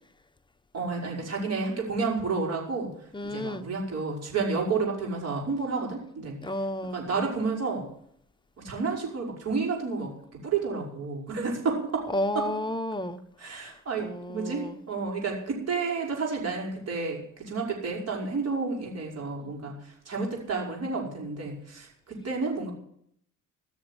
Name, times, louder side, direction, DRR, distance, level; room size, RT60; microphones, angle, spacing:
voice 1, 0.7-2.9 3.2-6.4 6.8-7.9 8.6-10.1 10.4-12.1 12.3-12.5 13.4-22.7, right 4 dB, 55° right, 0 dB, 5.2 m, -30 dB
voice 2, 3.1-3.6 6.4-7.0 12.1-13.2 14.0-14.8, left 1 dB, 15° left, 8 dB, 1.0 m, -31 dB
16.0 x 6.4 x 9.8 m, 0.69 s
cardioid pair, 90°, 30 cm